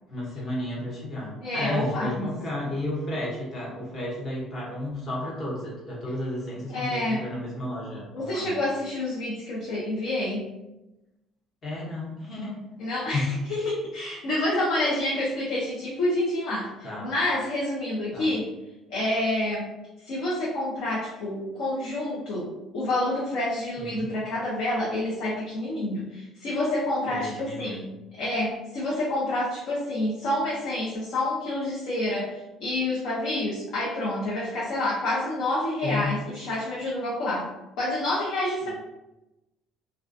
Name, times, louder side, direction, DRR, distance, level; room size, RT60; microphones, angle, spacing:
voice 1, 0.1-8.6 11.6-12.6 13.1-13.2 16.8-17.1 18.1-18.3 23.8-24.1 27.1-27.8 35.8-36.1 38.6-38.7, left 1 dB, 40° left, -5 dB, 1.0 m, -32 dB
voice 2, 1.4-2.3 6.7-7.3 8.1-10.5 12.8-18.5 18.9-19.7 20.0-27.8 28.2-37.5 37.8-38.7, left 1 dB, 70° left, -5 dB, 0.6 m, -28 dB
2.3 x 2.2 x 2.5 m, 0.98 s
cardioid pair, 125°, 0 cm